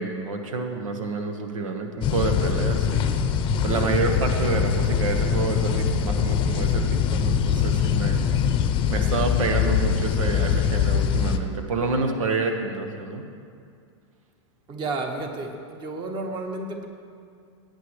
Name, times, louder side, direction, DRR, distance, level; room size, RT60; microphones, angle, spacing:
voice 1, 0.0-3.1 3.6-8.2 8.9-13.2, right 3 dB, 90° right, 4 dB, 1.3 m, -28 dB
sound 1, 2.0-11.4, left 7 dB, 30° left, 0.7 m, -23 dB
voice 2, 14.7-16.9, right 3 dB, 30° right, 3 dB, 1.6 m, -32 dB
17.5 x 9.0 x 3.2 m, 2.3 s
hypercardioid pair, 130°, 16 cm